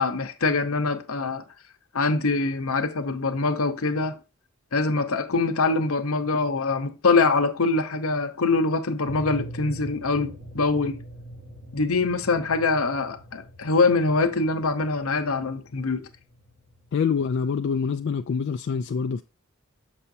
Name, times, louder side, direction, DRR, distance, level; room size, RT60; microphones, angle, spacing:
voice 1, 0.0-1.4 1.9-4.2 4.7-11.0 11.7-16.1, left 3 dB, 75° left, 0.8 m, -24 dB
sound 1, 9.0-17.6, right 1 dB, 50° right, 1.4 m, -43 dB
voice 2, 16.9-19.2, left 6 dB, 55° left, 0.3 m, -25 dB
7.1 x 5.5 x 2.7 m
head